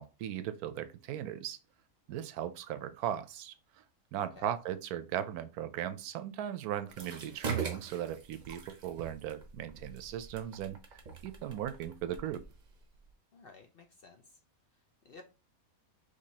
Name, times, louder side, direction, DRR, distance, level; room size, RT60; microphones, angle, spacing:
voice 1, 0.0-1.6 2.1-3.5 4.1-12.4, right 10 dB, 85° right, 1.1 m, -38 dB
voice 2, 4.2-4.6 13.3-14.4 14.7-15.2, left 4 dB, 55° left, 0.7 m, -55 dB
sound 1, 6.9-13.1, right 5 dB, 40° right, 0.7 m, -42 dB
5.2 x 3.3 x 2.8 m
omnidirectional pair, 1.6 m